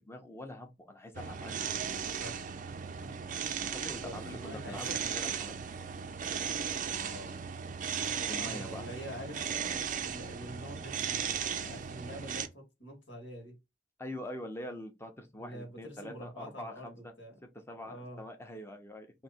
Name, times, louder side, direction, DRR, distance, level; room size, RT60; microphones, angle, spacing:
voice 1, 0.0-1.5 3.7-5.6 7.9-8.9 14.0-17.1 17.7-19.1, left 1 dB, 15° left, 0.7 m, -44 dB
sound 1, 1.1-12.5, right 7 dB, 45° right, 0.4 m, -36 dB
voice 2, 3.9-5.4 6.9-7.4 8.3-9.4 10.0-13.5 15.4-17.4 17.8-18.2, equal, 80° left, 1.6 m, -46 dB
3.1 x 2.7 x 4.2 m
head